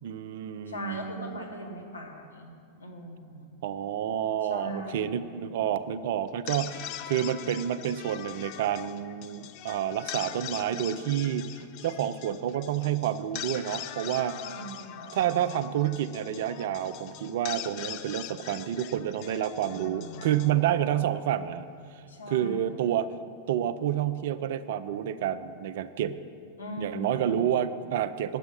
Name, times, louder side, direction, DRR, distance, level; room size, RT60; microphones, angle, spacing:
voice 1, 0.0-1.4 3.6-14.4 15.1-21.7 22.3-23.1 23.5-26.2 26.8-28.4, right 10 dB, 55° right, 13 dB, 0.4 m, -29 dB
voice 2, 0.7-2.5 2.8-3.5 4.4-5.2 14.4-15.2 19.7-20.4 22.1-22.8 26.6-27.4, equal, 75° left, 1 dB, 1.6 m, -40 dB
sound 1, 6.3-21.5, left 12 dB, 40° left, 0.4 m, -42 dB
9.7 x 8.0 x 7.7 m, 2.4 s
figure-of-eight pair, 90°, 0 cm